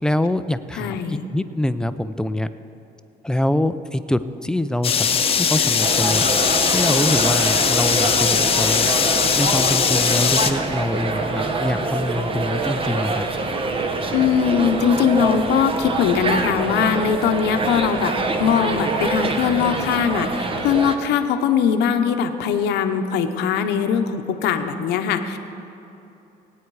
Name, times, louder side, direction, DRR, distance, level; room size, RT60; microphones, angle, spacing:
voice 1, 0.0-2.5 3.2-6.3 6.7-8.9 9.3-13.3, left 1 dB, 5° left, 11 dB, 0.4 m, -24 dB
voice 2, 0.8-1.3 14.1-18.1 18.4-25.4, left 7 dB, 80° left, 7 dB, 0.9 m, -21 dB
sound 1, 4.8-10.5, left 7 dB, 35° left, 0.8 m, -20 dB
sound 2, 5.8-21.0, right 3 dB, 30° right, 0.9 m, -25 dB
18.5 x 9.3 x 4.8 m, 2.9 s
cardioid pair, 110°, 17 cm